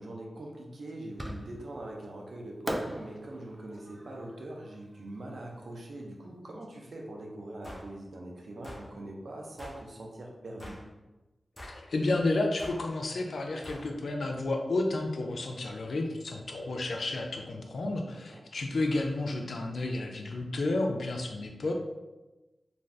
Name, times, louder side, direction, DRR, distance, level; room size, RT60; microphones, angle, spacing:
voice 1, 0.0-10.8 18.1-18.4, right 1 dB, 75° right, 0 dB, 0.6 m, -42 dB
Fireworks, 1.2-1.8 2.7-5.8, equal, 15° right, 0.4 m, -40 dB
sound 1, 7.6-7.9 8.6-8.9 9.6-9.8 10.6-10.9 11.6-11.8 12.6-12.8 13.6-13.9, equal, 25° left, 0.7 m, -45 dB
voice 2, 11.6-21.7, left 2 dB, 75° left, 2 dB, 0.4 m, -31 dB
2.5 x 2.3 x 3.2 m, 1.1 s
wide cardioid pair, 65°, 0 cm